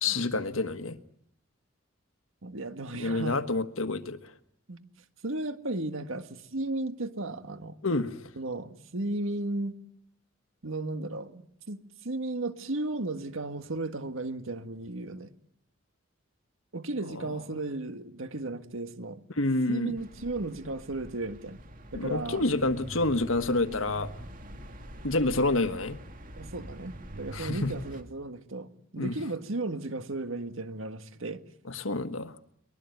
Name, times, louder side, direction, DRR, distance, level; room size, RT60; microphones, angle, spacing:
voice 1, 0.0-1.0 2.9-4.2 7.8-8.1 19.4-20.0 21.9-24.1 25.0-26.0 27.3-27.7 29.0-29.1 31.7-32.3, left 2 dB, 85° left, 1.5 m, -28 dB
voice 2, 2.4-3.4 4.7-4.9 5.2-7.8 8.4-9.8 10.6-15.3 16.7-19.2 19.7-21.6 21.9-22.4 26.4-31.4, right 2 dB, 80° right, 1.7 m, -35 dB
sound 1, 20.0-28.0, right 1 dB, 40° right, 2.3 m, -45 dB
23.5 x 21.5 x 9.3 m
head